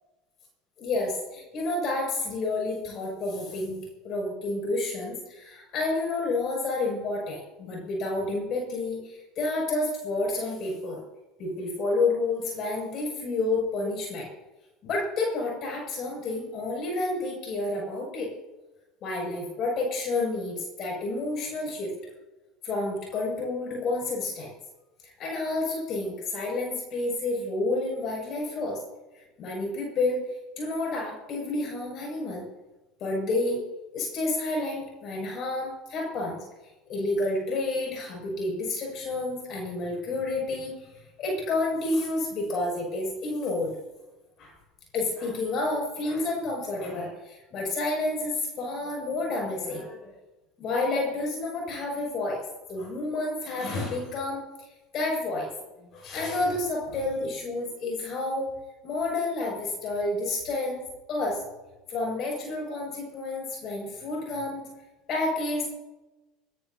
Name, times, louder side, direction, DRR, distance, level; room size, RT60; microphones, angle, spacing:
voice 1, 0.8-3.8 4.0-11.0 11.4-14.3 14.8-18.3 19.0-21.9 22.6-24.5 25.0-28.8 29.1-30.2 30.6-32.5 33.0-33.6 33.9-36.4 36.9-43.8 44.4-44.5 44.9-50.1 50.6-52.4 52.7-55.5 55.9-58.5 58.8-60.8 61.1-61.4 61.9-64.6 65.1-65.7, left 2 dB, 50° left, -1 dB, 7.4 m, -30 dB
21.0 x 21.0 x 2.9 m, 1.1 s
hypercardioid pair, 80°, 0 cm